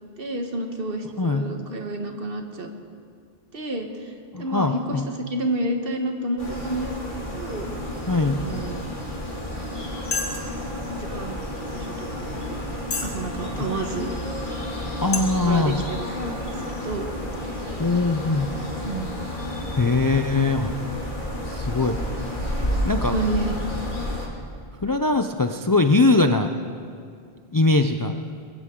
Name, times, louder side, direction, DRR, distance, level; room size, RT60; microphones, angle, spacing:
voice 1, 0.2-2.7 3.5-4.1 4.4-7.7 8.2-8.8 10.2-10.3 10.9-12.7 13.0-14.2 15.4-16.2 16.5-17.1 17.4-17.7 18.8-19.2 23.1-23.5, right 2 dB, 60° right, 4 dB, 1.5 m, -30 dB
voice 2, 4.3-5.1 8.1-8.4 15.0-15.7 17.8-18.5 19.8-20.7 21.5-22.0 22.8-23.2 24.8-26.5 27.5-28.1, left 3 dB, 30° left, 6 dB, 0.4 m, -21 dB
sound 1, 6.4-24.3, left 1 dB, 50° left, 2.6 m, -31 dB
sound 2, 10.1-10.6 11.3-11.4 12.0-12.1 12.8-13.2 13.8-13.9 14.6-14.7 15.1-15.2, left 4 dB, 80° left, 1.7 m, -28 dB
22.0 x 14.5 x 3.8 m, 2.3 s
omnidirectional pair, 1.1 m